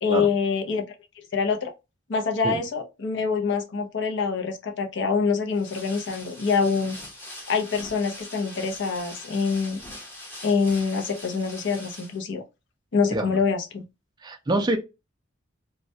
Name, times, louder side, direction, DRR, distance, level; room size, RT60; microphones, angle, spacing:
voice 1, 0.0-0.8 1.3-1.7 2.1-7.0 7.5-9.8 10.4-12.4 12.9-13.8, left 5 dB, 60° left, 0.5 m, -25 dB
sound 1, 5.5-12.2, left 1 dB, 10° left, 0.7 m, -42 dB
voice 2, 14.2-14.8, right 2 dB, 20° right, 0.3 m, -25 dB
2.3 x 2.1 x 2.6 m
head